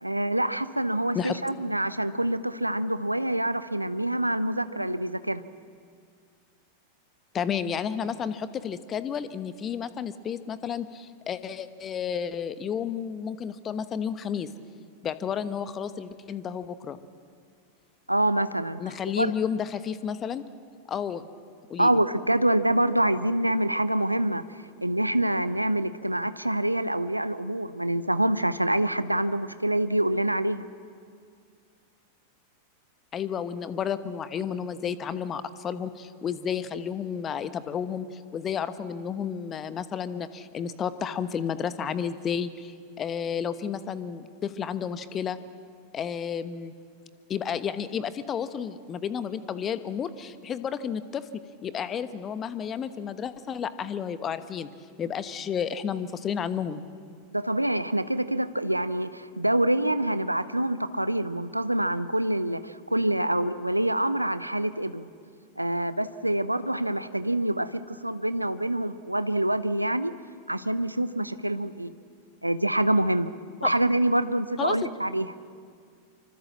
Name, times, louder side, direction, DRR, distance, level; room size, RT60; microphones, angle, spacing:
voice 1, 0.0-5.4 18.1-18.8 19.2-19.3 21.8-24.4 24.8-30.6 57.3-65.1 65.6-70.1 70.5-71.9 72.4-73.3 73.6-75.3, right 1 dB, 85° right, 13 dB, 0.8 m, -26 dB
voice 2, 7.3-14.5 15.0-17.0 18.8-20.4 20.9-21.3 21.7-21.9 33.1-45.4 45.9-46.7 47.3-51.3 51.6-54.7 55.0-56.8 74.6-74.7, left 7 dB, 25° left, 13 dB, 1.2 m, -31 dB
25.5 x 25.0 x 7.5 m, 2.2 s
figure-of-eight pair, 90°, 0 cm